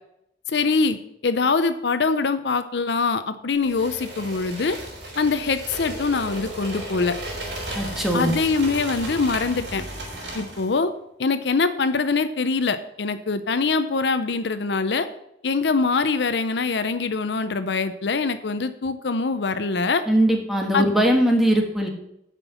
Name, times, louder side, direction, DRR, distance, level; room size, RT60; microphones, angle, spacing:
voice 1, 0.5-1.0 1.2-4.8 5.2-7.2 8.1-9.8 10.3-10.9 11.2-15.1 15.4-20.0 20.7-21.0, left 4 dB, 70° left, 11 dB, 0.6 m, -23 dB
sound 1, 3.6-10.7, right 1 dB, 70° right, 3.4 m, -34 dB
voice 2, 7.7-8.3 20.1-21.9, equal, ahead, 2 dB, 1.7 m, -20 dB
9.0 x 6.1 x 7.0 m, 0.80 s
head